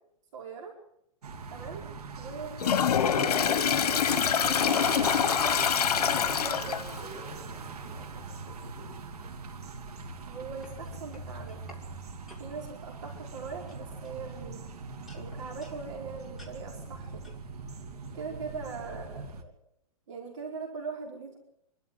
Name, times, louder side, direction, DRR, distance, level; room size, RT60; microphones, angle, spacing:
voice 1, 0.3-0.8 1.5-1.8 2.2-5.1 6.0-6.8 10.3-11.6 12.4-14.6 15.1-17.3 18.1-19.5 20.1-21.4, right 5 dB, 50° right, 0 dB, 4.8 m, -41 dB
sound 1, 1.2-19.4, right 4 dB, 85° right, 2.9 m, -40 dB
Toilet flush, 2.6-7.0, left 8 dB, 85° left, 1.2 m, -25 dB
voice 2, 5.9-9.1 18.2-18.3, right 1 dB, 20° right, -2 dB, 6.5 m, -47 dB
sound 2, 10.2-11.9 12.3-12.5 13.1-13.4 13.7-14.6 15.1-15.8 16.4-16.6 17.2-17.4, left 2 dB, ahead, 2.3 m, -53 dB
26.0 x 13.0 x 7.8 m, 0.74 s
hypercardioid pair, 170°, 19 cm